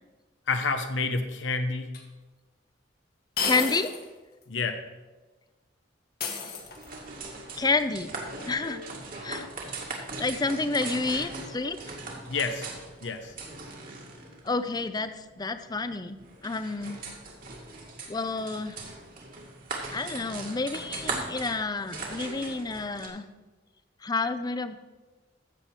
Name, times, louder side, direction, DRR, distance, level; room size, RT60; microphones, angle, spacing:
voice 1, 0.5-2.0 4.5-4.8 12.3-12.7 13.0-13.3, left 4 dB, 80° left, 7 dB, 0.9 m, -29 dB
sound 1, 1.9-2.0 3.4-4.1 4.4-4.5 6.2-7.1, left 5 dB, 55° left, 1.6 m, -32 dB
voice 2, 3.4-3.9 7.6-8.1 8.5-8.8 9.2-9.5 10.2-11.8 14.4-16.2 16.4-17.0 18.1-18.8 19.9-23.2 24.0-24.8, left 3 dB, 20° left, 11 dB, 0.6 m, -29 dB
sound 2, 6.6-23.1, right 3 dB, 50° right, 2.1 m, -40 dB
14.5 x 7.3 x 4.7 m, 1.2 s
head